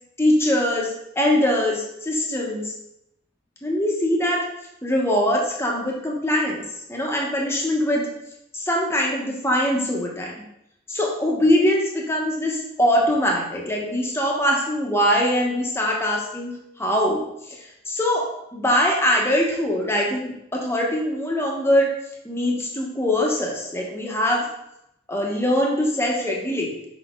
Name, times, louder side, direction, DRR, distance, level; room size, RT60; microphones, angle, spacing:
voice 1, 0.2-2.7 3.6-4.4 4.8-6.6 6.9-8.1 8.5-10.3 10.9-17.2 17.9-21.9 22.2-24.5 25.1-26.7, left 1 dB, 15° left, -1 dB, 1.4 m, -22 dB
6.0 x 5.9 x 3.9 m, 0.80 s
head